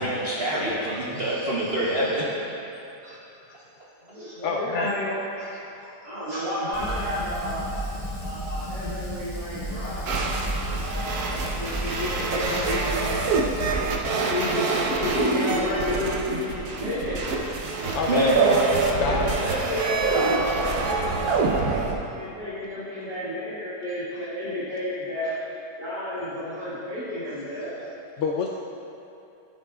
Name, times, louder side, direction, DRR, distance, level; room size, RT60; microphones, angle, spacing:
voice 1, 0.0-2.3 18.1-18.4, equal, 45° right, -6 dB, 1.0 m, -25 dB
voice 2, 1.1-2.1 3.0-3.2 4.0-5.6 6.0-7.9 8.2-10.3 10.8-13.7 14.2-17.5 17.9-21.7 22.1-25.3 25.8-27.9, left 1 dB, 85° right, -14 dB, 2.7 m, -31 dB
voice 3, 4.4-4.9 17.9-18.3 19.0-19.4 28.2-28.5, left 5 dB, 70° left, 0 dB, 0.7 m, -27 dB
Fire, 6.7-13.9, equal, 25° left, 1.5 m, -33 dB
sound 1, 10.1-21.9, right 3 dB, 65° right, 1.3 m, -26 dB
14.0 x 8.3 x 2.3 m, 2.8 s
omnidirectional pair, 1.8 m